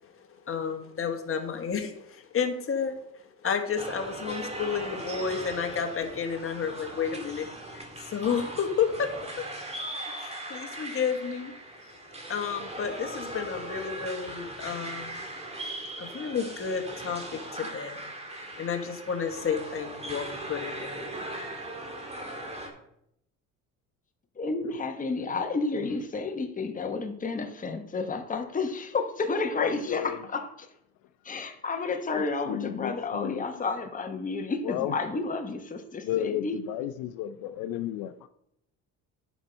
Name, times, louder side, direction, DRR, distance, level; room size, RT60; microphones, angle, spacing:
voice 1, 0.2-3.0 3.4-7.5 7.7-9.1 9.4-9.5 10.2-11.5 12.3-15.2 16.0-21.6 22.0-22.1, left 6 dB, 40° left, 5 dB, 1.5 m, -31 dB
sound 1, 3.8-22.7, right 1 dB, 20° right, 2.0 m, -39 dB
voice 2, 24.4-30.7 31.2-36.6, left 3 dB, 25° left, 5 dB, 1.1 m, -31 dB
voice 3, 29.6-30.2 32.1-33.5 34.6-34.9 36.1-38.3, left 11 dB, 85° left, 10 dB, 0.5 m, -33 dB
9.9 x 5.4 x 4.4 m, 0.77 s
cardioid pair, 90°, 35 cm